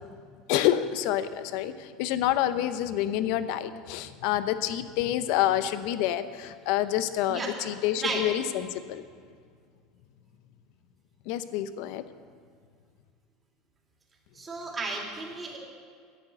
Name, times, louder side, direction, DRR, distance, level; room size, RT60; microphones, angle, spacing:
voice 1, 0.5-9.0 11.3-12.0, left 12 dB, 70° left, 12 dB, 0.7 m, -28 dB
voice 2, 14.4-15.6, right 3 dB, 20° right, -2 dB, 2.8 m, -33 dB
11.5 x 8.9 x 7.7 m, 2.1 s
supercardioid pair, 125°, 0 cm